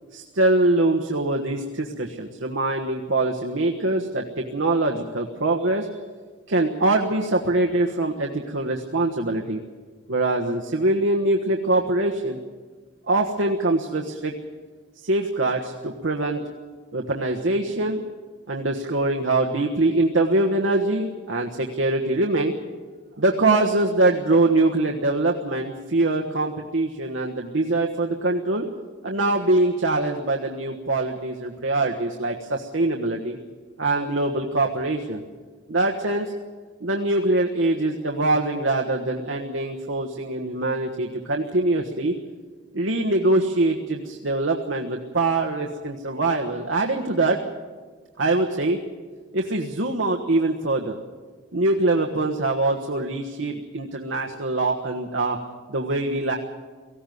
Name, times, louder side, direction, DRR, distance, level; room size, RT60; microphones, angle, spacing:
voice 1, 0.1-5.9 6.5-9.6 10.1-12.4 13.1-14.3 15.0-16.4 16.9-18.0 18.5-22.5 23.2-28.6 29.0-33.4 33.8-35.2 35.7-36.3 36.8-42.1 42.7-47.4 48.2-48.8 49.3-51.0 51.5-55.4 55.7-56.4, right 2 dB, 80° right, 1 dB, 1.4 m, -23 dB
18.5 x 15.5 x 9.4 m, 1.5 s
head